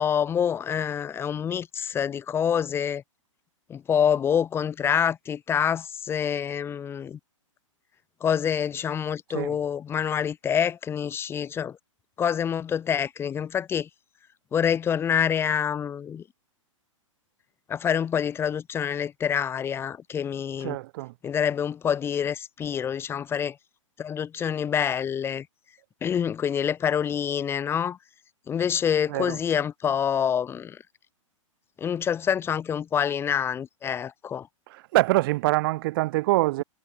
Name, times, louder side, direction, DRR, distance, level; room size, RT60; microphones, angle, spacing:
voice 1, 0.0-3.0 3.7-7.2 8.2-11.8 12.2-13.9 14.5-16.2 17.7-20.8 21.2-23.6 24.0-25.5 26.0-28.0 28.5-30.8 31.8-34.5, left 8 dB, 15° left, 0.8 m, -26 dB
voice 2, 20.6-21.1 29.1-29.4 34.7-36.6, right 20 dB, 40° right, 2.7 m, -24 dB
figure-of-eight pair, 110°, 17 cm